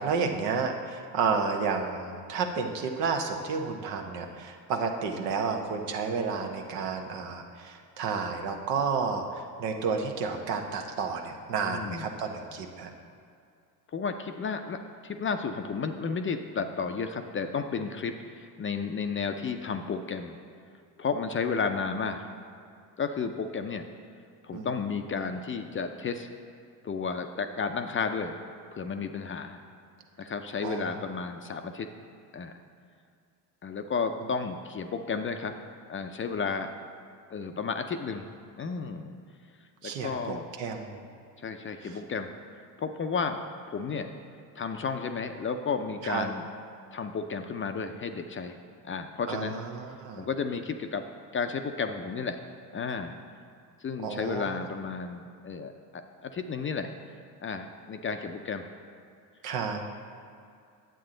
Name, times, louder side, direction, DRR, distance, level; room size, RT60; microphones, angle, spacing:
voice 1, 0.0-12.9 24.5-24.7 30.6-30.9 39.8-41.1 41.8-42.0 46.0-46.3 49.3-50.3 54.0-54.6 59.4-59.8, right 5 dB, 75° right, 3 dB, 1.1 m, -31 dB
voice 2, 11.7-12.1 13.9-20.4 21.0-22.3 23.0-23.8 24.4-26.3 26.8-28.3 28.7-29.6 30.2-31.9 32.3-32.5 33.6-35.6 35.9-36.7 37.3-38.3 38.6-39.1 39.8-40.5 41.4-42.3 42.8-43.4 43.7-44.1 44.6-46.4 46.9-48.6 48.8-49.6 50.2-51.0 51.3-52.4 52.7-53.2 53.8-56.9 57.4-58.7, left 5 dB, 25° left, 7 dB, 0.5 m, -32 dB
9.0 x 7.6 x 3.8 m, 2.4 s
hypercardioid pair, 70°, 49 cm